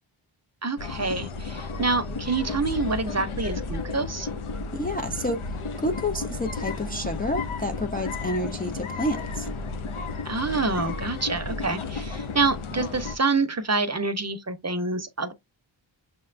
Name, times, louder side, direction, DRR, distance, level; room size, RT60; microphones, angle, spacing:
voice 1, 0.6-4.3 10.3-15.3, right 3 dB, 35° right, 0.6 m, -27 dB
sound 1, 0.8-13.2, left 4 dB, 85° left, 0.6 m, -33 dB
voice 2, 4.7-5.5 5.8-9.5, left 1 dB, 20° left, 0.3 m, -29 dB
6.4 x 2.2 x 2.4 m
wide cardioid pair, 65°, 48 cm